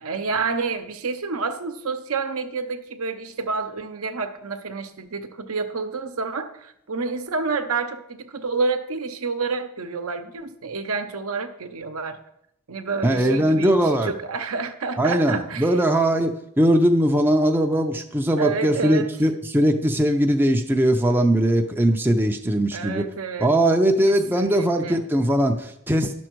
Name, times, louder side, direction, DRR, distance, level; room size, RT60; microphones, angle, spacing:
voice 1, 0.0-12.2 12.7-15.8 18.4-19.1 22.7-23.5 24.1-25.0, right 4 dB, 70° right, 7 dB, 0.8 m, -29 dB
voice 2, 13.0-14.1 15.0-16.3 16.6-23.0 23.4-26.1, right 1 dB, 10° right, 3 dB, 0.5 m, -20 dB
11.0 x 6.2 x 4.5 m, 0.76 s
head